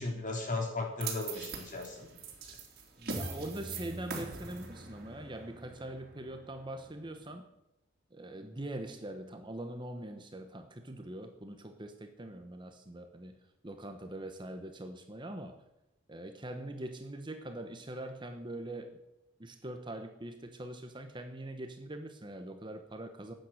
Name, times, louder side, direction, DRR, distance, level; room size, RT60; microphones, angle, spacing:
voice 1, 0.0-2.2, left 2 dB, 40° left, 1 dB, 3.8 m, -36 dB
sound 1, 1.0-7.3, right 3 dB, 50° right, 3.2 m, -42 dB
voice 2, 3.0-7.5 8.1-13.4 13.6-15.6 16.1-18.9 19.4-23.3, right 1 dB, 25° right, 6 dB, 1.1 m, -43 dB
13.5 x 9.0 x 7.8 m, 0.87 s
head